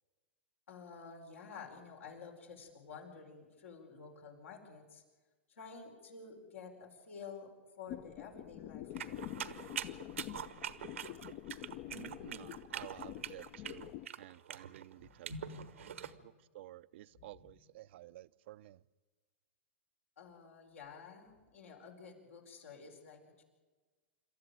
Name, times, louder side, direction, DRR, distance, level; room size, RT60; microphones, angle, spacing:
voice 1, 0.7-5.0 5.5-7.5 7.8-9.0 15.0-16.2 17.1-17.5 20.2-23.4, left 5 dB, 85° left, 4.7 m, -51 dB
sound 1, 7.9-14.1, left 13 dB, 45° left, 0.6 m, -47 dB
sound 2, 9.0-16.1, right 9 dB, 85° right, 1.2 m, -44 dB
voice 2, 11.9-15.3 15.8-18.8, right 15 dB, 65° right, 0.6 m, -53 dB
27.0 x 13.5 x 9.0 m
hypercardioid pair, 115°, 7 cm